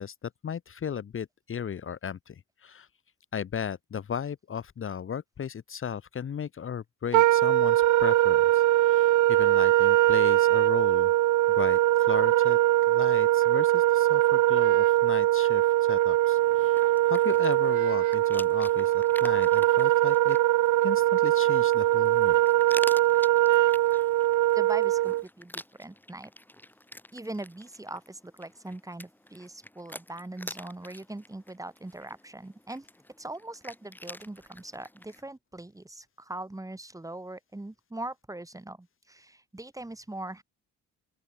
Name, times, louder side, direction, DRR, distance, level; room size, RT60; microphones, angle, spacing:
voice 1, 0.0-2.9 3.3-11.1 11.6-12.6 12.9-16.8 17.1-20.4 20.8-22.4, left 8 dB, 45° left, 1.3 m, -36 dB
Wind instrument woodwind instrument, 7.1-25.2, right 15 dB, 75° right, 0.8 m, -22 dB
sound 1, 16.4-35.2, left 1 dB, 5° left, 4.8 m, -47 dB
voice 2, 24.5-26.3 27.1-32.9 33.2-40.4, right 2 dB, 10° right, 2.7 m, -41 dB
open air
cardioid pair, 90°, 30 cm